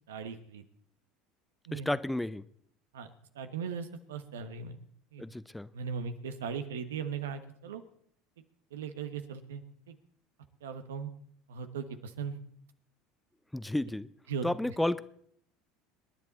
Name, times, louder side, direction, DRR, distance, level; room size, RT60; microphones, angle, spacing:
voice 1, 0.1-0.6 1.7-1.9 2.9-3.1 3.3-4.8 5.1-5.2 5.7-7.8 8.7-9.9 10.6-11.1 11.5-12.4 14.3-14.8, right 6 dB, 85° right, 9 dB, 1.2 m, -38 dB
voice 2, 1.7-2.4 5.2-5.7 13.5-14.1 14.4-15.0, left 1 dB, 5° left, 16 dB, 0.6 m, -31 dB
26.0 x 10.5 x 4.1 m, 0.66 s
hypercardioid pair, 75°, 0 cm